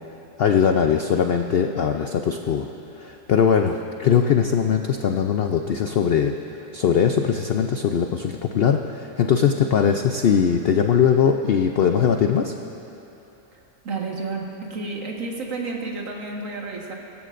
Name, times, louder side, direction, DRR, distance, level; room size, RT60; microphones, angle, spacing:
voice 1, 0.4-2.7 3.0-6.3 6.7-12.5, left 7 dB, 85° left, 5 dB, 0.5 m, -20 dB
voice 2, 13.8-17.0, right 3 dB, 55° right, -1 dB, 1.8 m, -31 dB
24.0 x 14.0 x 2.6 m, 3.0 s
omnidirectional pair, 1.6 m